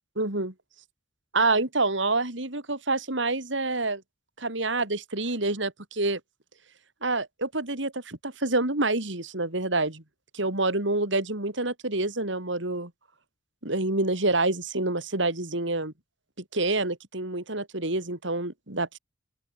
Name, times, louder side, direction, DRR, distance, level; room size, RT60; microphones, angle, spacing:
voice 1, 0.2-0.5 1.3-4.0 4.4-6.2 7.0-10.0 10.3-12.9 13.6-15.9 16.5-19.0, right 2 dB, 70° right, 4.0 m, -27 dB
open air
head